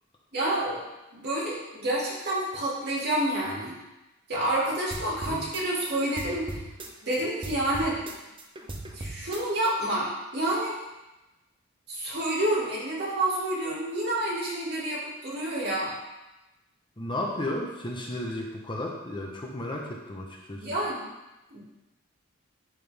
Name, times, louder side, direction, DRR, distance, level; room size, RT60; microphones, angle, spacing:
voice 1, 0.3-0.8 1.1-3.8 4.3-6.6 7.0-8.0 8.9-10.8 11.9-15.9 20.6-21.0 21.5-21.6, right 1 dB, 55° right, -6 dB, 2.3 m, -28 dB
sound 1, 4.9-7.2 7.4-9.7, right 2 dB, 25° right, 0.6 m, -39 dB
voice 2, 17.0-20.7, left 1 dB, 25° left, -1 dB, 0.8 m, -33 dB
11.0 x 3.8 x 3.4 m, 1.0 s
head